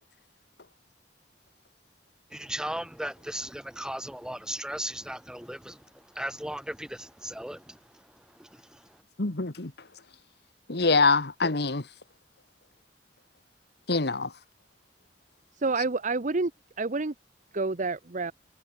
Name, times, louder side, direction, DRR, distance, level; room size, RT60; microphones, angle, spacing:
voice 1, 2.3-9.0, right 1 dB, 5° right, 4.3 m, -37 dB
voice 2, 9.2-9.7 10.7-11.9 13.9-14.3, left 3 dB, 65° left, 1.7 m, -24 dB
voice 3, 15.6-16.5 16.8-17.1 17.5-18.3, right 3 dB, 45° right, 0.9 m, -28 dB
head